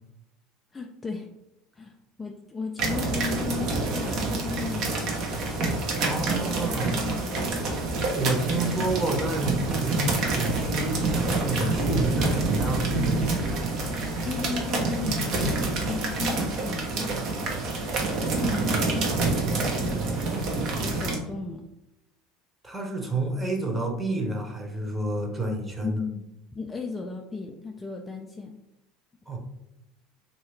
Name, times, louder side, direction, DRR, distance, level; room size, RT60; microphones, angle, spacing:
voice 1, 0.7-1.3 1.8-5.2 6.3-7.7 14.0-17.3 18.2-21.6 25.8-26.3 26.5-28.6, left 4 dB, 20° left, 3 dB, 0.4 m, -35 dB
sound 1, 2.8-21.2, right 3 dB, 55° right, 0.9 m, -27 dB
voice 2, 6.0-7.0 8.1-12.9 22.6-26.0 29.3-29.4, right 2 dB, 15° right, 1 dB, 1.0 m, -29 dB
3.0 x 2.8 x 3.2 m, 0.89 s
hypercardioid pair, 80°, 0 cm